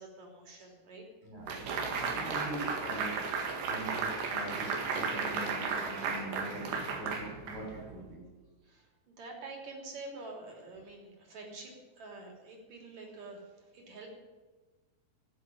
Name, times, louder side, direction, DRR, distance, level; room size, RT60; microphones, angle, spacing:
voice 1, 0.0-1.0 8.6-13.5 13.7-14.1, right 3 dB, 45° right, 1 dB, 4.2 m, -47 dB
voice 2, 1.2-1.5 2.0-3.2 3.6-8.2, right 1 dB, 65° right, -2 dB, 7.8 m, -42 dB
sound 1, 1.5-7.9, right 5 dB, 85° right, 4.1 m, -34 dB
16.0 x 7.7 x 9.9 m, 1.3 s
omnidirectional pair, 4.7 m